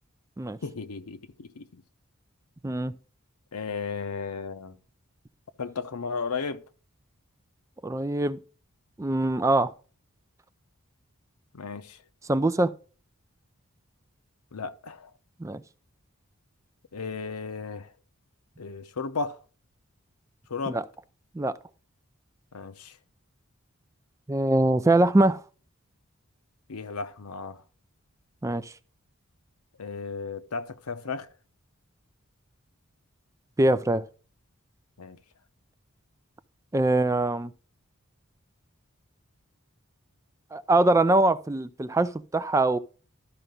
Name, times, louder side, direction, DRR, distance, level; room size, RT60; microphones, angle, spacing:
voice 1, 0.6-1.8 3.5-4.8 5.6-6.6 11.5-12.0 14.5-15.1 16.9-17.9 18.6-19.4 20.5-20.8 22.5-23.0 26.7-27.6 29.8-31.3 35.0-35.2, left 4 dB, 90° left, 0.8 m, -34 dB
voice 2, 7.8-8.4 9.0-9.7 12.3-12.7 15.4-15.6 20.7-20.8 21.3-21.6 24.3-25.4 28.4-28.7 33.6-34.0 36.7-37.5 40.5-42.8, right 2 dB, 15° right, 0.4 m, -23 dB
12.5 x 5.6 x 3.8 m
head